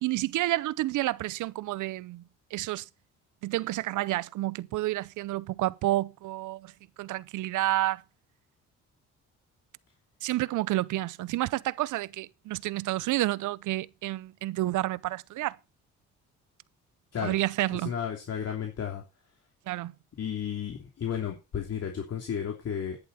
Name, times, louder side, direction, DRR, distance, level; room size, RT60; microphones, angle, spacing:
voice 1, 0.0-2.2 2.5-2.9 3.4-6.7 7.0-8.0 10.2-15.6 17.2-17.9 19.7-19.9, right 16 dB, 80° right, 0.7 m, -30 dB
voice 2, 17.7-19.0 20.2-23.0, left 8 dB, 55° left, 3.1 m, -33 dB
11.0 x 10.5 x 4.2 m
cardioid pair, 90°, 30 cm